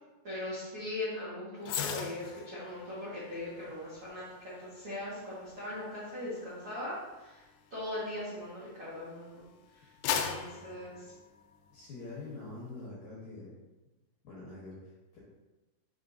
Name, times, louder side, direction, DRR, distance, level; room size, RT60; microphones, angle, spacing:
voice 1, 0.2-9.4 9.7-9.9 10.3-11.1, left 1 dB, 80° right, -10 dB, 1.2 m, -40 dB
sound 1, 1.6-9.0 9.5-11.9 12.2-12.5, left 8 dB, 85° left, 3.0 m, -40 dB
voice 2, 11.7-13.5 14.2-15.2, left 3 dB, 70° left, -6 dB, 2.2 m, -45 dB
6.7 x 5.4 x 2.6 m, 1.1 s
omnidirectional pair, 5.3 m